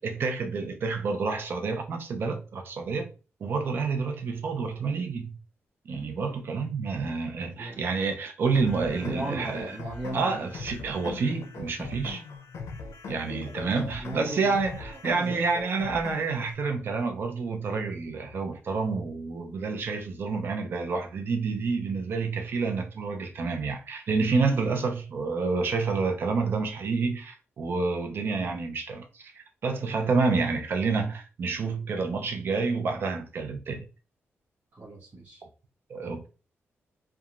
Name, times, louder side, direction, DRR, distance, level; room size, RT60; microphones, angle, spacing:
voice 1, 0.0-3.1 3.4-5.3 5.9-9.7 10.1-12.2 13.1-33.8 35.9-36.3, right 4 dB, 55° right, 0.5 m, -29 dB
voice 2, 7.5-7.8 9.0-10.4 13.4-14.5 15.1-15.3 34.7-35.5, right 1 dB, 35° right, 0.9 m, -37 dB
sound 1, 8.5-16.5, left 4 dB, 90° left, 0.5 m, -40 dB
2.9 x 2.3 x 2.4 m
wide cardioid pair, 165°, 5 cm